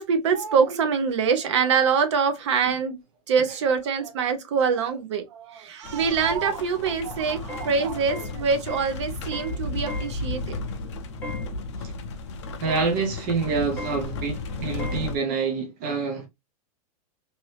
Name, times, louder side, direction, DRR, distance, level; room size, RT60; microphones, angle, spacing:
voice 1, 0.0-3.0 3.3-10.6, right 6 dB, 50° right, 0.7 m, -24 dB
sound 1, 5.8-15.2, left 3 dB, 50° left, 0.5 m, -34 dB
sound 2, 7.5-7.7 8.1-8.3 8.7-8.9 9.3-9.6 9.9-10.1 11.2-11.5 12.7-12.9 13.8-14.0 14.8-15.0, left 1 dB, 10° left, 0.9 m, -36 dB
voice 2, 12.6-16.3, right 4 dB, 20° right, 0.4 m, -27 dB
2.7 x 2.6 x 3.2 m
supercardioid pair, 180°, 19 cm